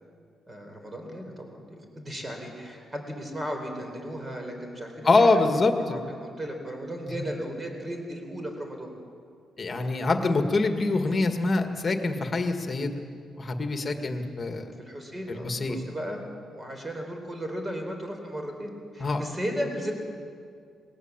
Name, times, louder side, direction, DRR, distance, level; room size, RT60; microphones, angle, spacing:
voice 1, 0.5-5.6 5.9-8.9 13.8-14.2 14.8-16.2 16.5-19.9, equal, 20° right, 3 dB, 4.3 m, -36 dB
voice 2, 5.0-6.0 7.2-7.3 9.6-12.9 13.4-14.6 15.3-15.8 19.0-19.2, left 3 dB, 35° left, 5 dB, 2.0 m, -24 dB
20.5 x 18.0 x 7.5 m, 2.2 s
cardioid pair, 95°, 0 cm